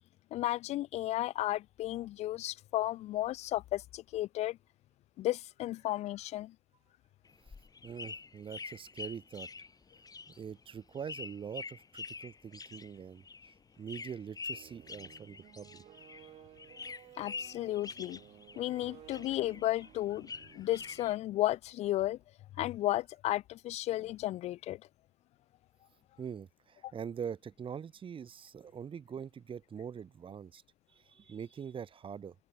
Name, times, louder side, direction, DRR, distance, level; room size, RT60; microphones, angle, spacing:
voice 1, 0.3-4.6 5.2-6.5 17.2-18.2 18.6-22.2 22.6-24.8, left 15 dB, 80° left, 2.1 m, -33 dB
sound 1, 7.2-16.3 16.6-18.8 19.1-21.1, left 4 dB, 35° left, 6.4 m, -46 dB
voice 2, 7.8-9.5 10.3-13.2 13.8-15.8 26.2-30.6 30.9-32.4, right 7 dB, 50° right, 3.9 m, -43 dB
sound 2, 14.5-21.4, right 13 dB, 75° right, 5.1 m, -57 dB
open air
supercardioid pair, 70°, 11 cm